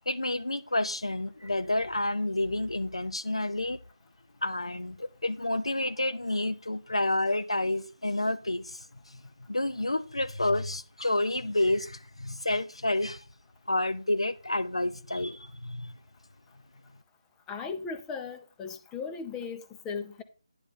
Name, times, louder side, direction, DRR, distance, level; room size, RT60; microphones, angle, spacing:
voice 1, 0.1-3.8 4.4-9.2 9.5-13.2 13.7-15.9, left 1 dB, 85° left, 0.7 m, -29 dB
voice 2, 17.5-20.2, left 5 dB, 10° left, 0.5 m, -37 dB
9.8 x 4.3 x 5.5 m
figure-of-eight pair, 155°, 3 cm